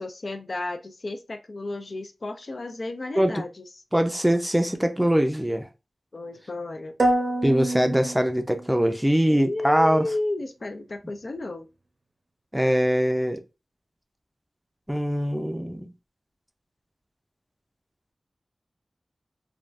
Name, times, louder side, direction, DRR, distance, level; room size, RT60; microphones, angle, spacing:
voice 1, 0.0-3.7 6.1-6.9 9.3-11.7, left 2 dB, 60° left, 0.4 m, -33 dB
voice 2, 3.9-5.7 7.4-10.1 12.5-13.4 14.9-15.9, equal, 10° right, 0.5 m, -22 dB
sound 1, 7.0-9.0, right 1 dB, 65° right, 0.6 m, -26 dB
3.3 x 2.3 x 2.5 m
wide cardioid pair, 80°, 0 cm